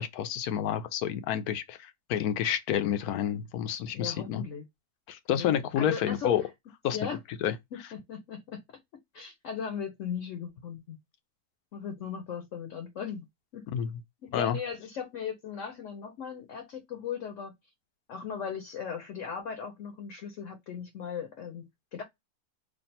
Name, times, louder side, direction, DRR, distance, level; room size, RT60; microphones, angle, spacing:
voice 1, 0.0-4.4 5.1-6.4 6.8-7.0 7.4-7.6 13.7-13.9 14.3-14.6, left 9 dB, 80° left, 1.1 m, -29 dB
voice 2, 3.9-4.6 5.4-6.3 6.9-7.2 7.7-8.6 9.1-11.0 11.7-13.3 13.5-13.6 14.2-17.5 18.1-22.0, left 7 dB, 60° left, 1.0 m, -38 dB
3.2 x 2.4 x 4.1 m
omnidirectional pair, 1.6 m